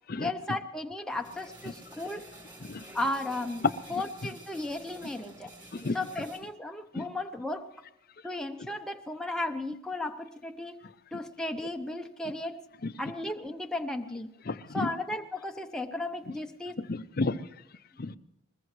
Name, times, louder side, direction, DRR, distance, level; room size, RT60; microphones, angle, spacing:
voice 1, 0.2-2.3 2.9-3.6 3.9-5.5 5.9-7.7 8.2-10.8 11.1-12.6 13.0-14.3 14.7-16.7, left 2 dB, 5° left, 4 dB, 0.6 m, -35 dB
sound 1, 1.1-6.4, right 1 dB, 20° right, 5.3 m, -50 dB
voice 2, 14.5-14.9 16.8-17.5 18.0-18.2, left 3 dB, 40° left, 13 dB, 0.5 m, -32 dB
21.0 x 20.5 x 3.2 m, 0.81 s
head